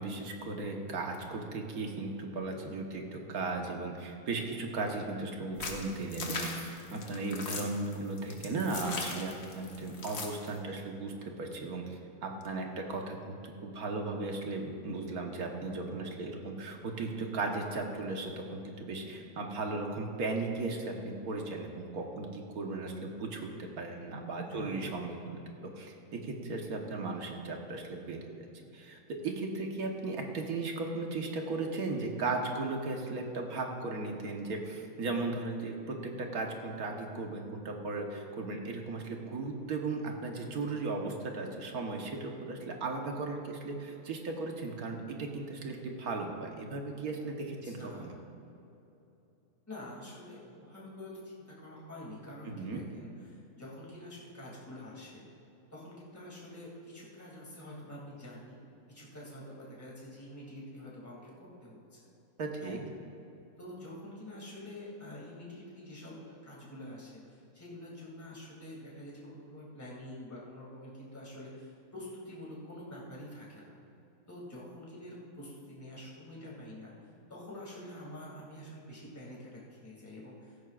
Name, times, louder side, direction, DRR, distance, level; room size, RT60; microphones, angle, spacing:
voice 1, 0.0-11.1 11.4-28.2 28.7-48.2 52.4-52.8 62.4-62.8, right 3 dB, 70° right, 2 dB, 1.7 m, -36 dB
sound 1, 5.6-10.5, left 4 dB, 60° left, 1.6 m, -38 dB
voice 2, 24.5-25.1 47.6-48.1 49.7-55.2 55.7-58.6 58.9-62.0 62.6-62.8 63.6-73.8 74.3-80.7, left 1 dB, 10° left, -5 dB, 2.4 m, -47 dB
16.5 x 14.0 x 2.5 m, 2.9 s
omnidirectional pair, 1.6 m